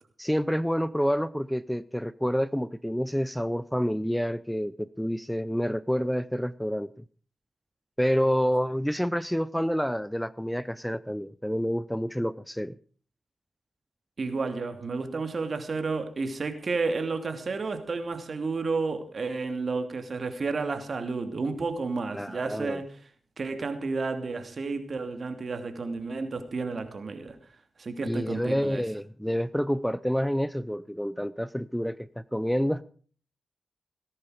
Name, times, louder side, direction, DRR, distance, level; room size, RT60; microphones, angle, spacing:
voice 1, 0.2-6.9 8.0-12.8 22.1-22.8 28.0-32.8, equal, 5° left, 0.6 m, -28 dB
voice 2, 14.2-23.0 23.4-27.4 27.8-28.8, right 4 dB, 55° right, 2.8 m, -31 dB
18.5 x 11.0 x 5.1 m
cardioid pair, 55°, 0 cm